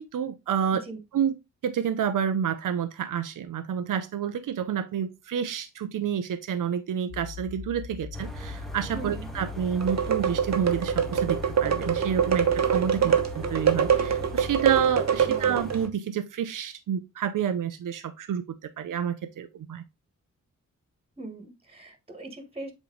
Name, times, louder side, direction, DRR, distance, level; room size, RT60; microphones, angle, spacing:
voice 1, 0.0-0.8 1.1-1.3 1.6-19.8, right 8 dB, 85° right, 0.6 m, -29 dB
sound 1, 7.1-14.8, left 7 dB, 80° left, 0.7 m, -40 dB
sound 2, 8.1-15.9, right 3 dB, ahead, 1.1 m, -40 dB
voice 2, 8.9-9.3 13.0-13.2 15.2-15.6 21.2-22.7, right 2 dB, 20° right, 1.5 m, -41 dB
sound 3, 9.8-15.9, right 8 dB, 60° right, 1.0 m, -24 dB
8.1 x 3.1 x 3.9 m
cardioid pair, 85°, 31 cm